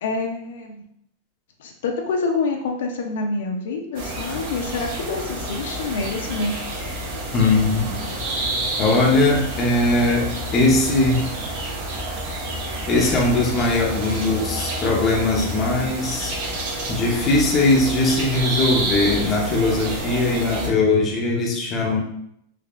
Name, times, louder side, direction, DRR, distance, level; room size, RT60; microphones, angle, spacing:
voice 1, 0.0-0.8 1.6-6.5, left 3 dB, 75° left, 3 dB, 0.6 m, -27 dB
sound 1, 3.9-20.7, right 1 dB, 55° right, 0.8 m, -29 dB
voice 2, 7.3-8.0 8.4-8.5 8.8-11.3 12.9-16.4 16.9-22.0, left 2 dB, 20° left, -1 dB, 0.6 m, -20 dB
3.5 x 3.2 x 2.4 m, 0.73 s
supercardioid pair, 165°, 0 cm